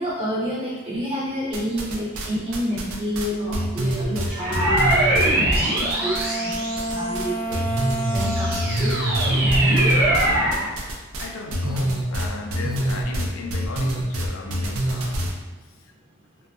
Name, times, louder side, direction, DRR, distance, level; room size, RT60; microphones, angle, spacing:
voice 1, 0.0-7.6 8.1-8.9, equal, 25° right, 0.5 m, -29 dB
sound 1, 1.5-2.3 2.5-6.3 6.5-7.3 7.5-15.3, right 1 dB, 90° right, 0.4 m, -25 dB
sound 2, 3.2-3.8 5.8-10.4 10.7-11.5, right 1 dB, 35° left, 0.5 m, -31 dB
sound 3, 4.3-7.3 7.8-10.7, right 1 dB, 65° right, 0.7 m, -22 dB
voice 2, 11.1-15.6, left 3 dB, 85° left, 0.4 m, -36 dB
2.7 x 2.2 x 2.3 m
head